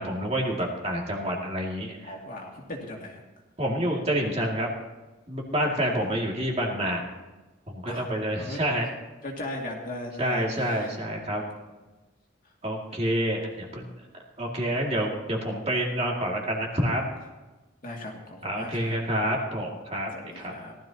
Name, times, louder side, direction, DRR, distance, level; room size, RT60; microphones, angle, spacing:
voice 1, 0.0-2.1 3.6-4.7 5.3-7.0 7.7-8.9 10.2-11.4 12.6-13.8 14.4-17.0 18.4-20.1 20.4-20.5, equal, 30° right, -1 dB, 2.4 m, -28 dB
voice 2, 2.0-3.2 5.6-6.2 7.9-8.1 8.4-8.6 9.2-10.9 12.4-12.5 17.8-19.0 20.1-20.8, left 1 dB, 40° left, -1 dB, 2.4 m, -38 dB
18.5 x 13.0 x 2.9 m, 1.1 s
head